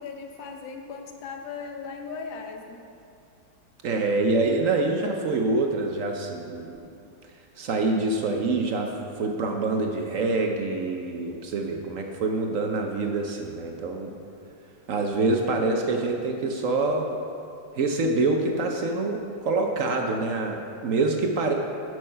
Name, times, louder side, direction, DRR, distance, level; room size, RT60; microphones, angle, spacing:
voice 1, 0.0-2.8, left 5 dB, 90° left, 4 dB, 1.6 m, -38 dB
voice 2, 3.8-6.9 7.6-14.1 14.9-17.2 17.7-21.5, right 3 dB, 60° right, 3 dB, 0.9 m, -26 dB
8.8 x 6.3 x 5.6 m, 2.6 s
omnidirectional pair, 2.0 m